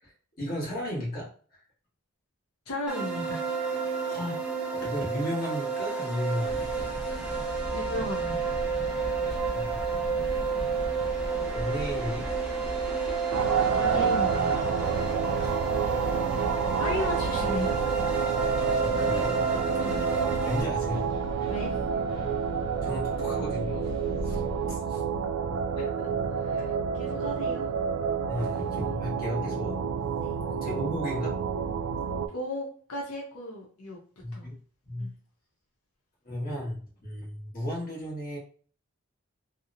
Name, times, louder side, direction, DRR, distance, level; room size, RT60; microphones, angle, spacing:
voice 1, 0.4-1.3 4.1-4.4 4.7-6.9 9.5-9.8 11.5-12.3 15.4-15.5 18.8-19.6 20.4-21.1 22.8-23.9 24.2-24.4 24.7-25.0 26.6-26.7 28.3-29.8 30.6-31.4 34.2-34.6 34.8-35.1 36.2-38.4, equal, 40° left, -4 dB, 1.1 m, -34 dB
voice 2, 2.7-3.4 7.7-8.5 13.7-14.7 16.8-17.8 19.8-20.0 21.5-21.8 25.8-26.1 26.4-27.7 30.2-30.4 32.3-34.0 34.3-34.5 35.0-35.1, left 1 dB, 85° left, -2 dB, 0.7 m, -35 dB
sound 1, 2.9-20.6, right 5 dB, 5° right, 0.4 m, -31 dB
sound 2, 6.4-24.8, equal, 15° left, 0.8 m, -39 dB
sound 3, 13.3-32.3, right 6 dB, 85° right, 0.3 m, -29 dB
2.8 x 2.0 x 2.5 m, 0.43 s
head